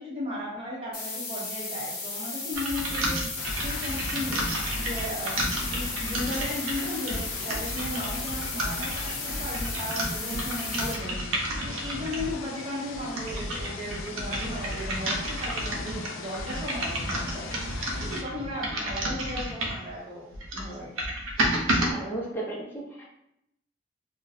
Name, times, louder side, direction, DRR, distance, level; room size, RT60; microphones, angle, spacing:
voice 1, 0.0-3.3 3.6-4.5 4.7-17.5 18.0-20.2 20.5-20.9, left 1 dB, 25° right, -5 dB, 0.8 m, -36 dB
sound 1, 0.9-10.9, left 3 dB, 45° left, 0.8 m, -35 dB
sound 2, 2.5-12.4 12.9-19.9 20.3-21.9, right 1 dB, 90° right, 0.7 m, -31 dB
sound 3, 3.4-18.2, left 5 dB, 90° left, 0.4 m, -40 dB
voice 2, 21.6-23.0, right 2 dB, 10° left, -5 dB, 0.6 m, -35 dB
2.7 x 2.1 x 4.0 m, 0.79 s
head